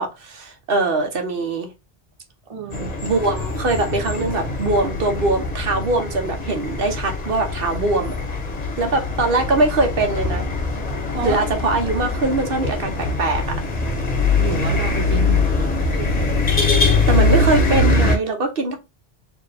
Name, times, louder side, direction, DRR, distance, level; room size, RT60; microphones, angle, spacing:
voice 1, 0.0-1.7 3.0-8.1 8.8-10.5 11.2-13.6 16.8-18.8, right 3 dB, 65° right, 1.1 m, -22 dB
voice 2, 2.5-2.9 11.1-11.4 14.4-16.2, right 6 dB, 35° right, 0.7 m, -30 dB
sound 1, 2.7-18.2, left 3 dB, 40° left, 1.0 m, -22 dB
4.5 x 2.8 x 3.3 m
omnidirectional pair, 1.1 m